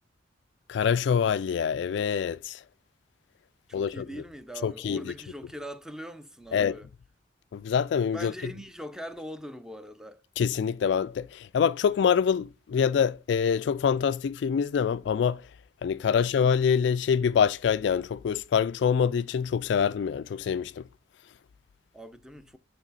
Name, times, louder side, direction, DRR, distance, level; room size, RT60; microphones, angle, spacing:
voice 1, 0.7-2.6 3.7-4.1 4.6-5.1 6.5-6.7 7.5-8.3 10.4-15.4 15.8-20.8, left 7 dB, 70° left, 0.3 m, -25 dB
voice 2, 3.7-6.9 8.1-10.2 16.1-16.3 21.9-22.6, equal, 5° right, 0.6 m, -41 dB
9.0 x 4.7 x 4.0 m
head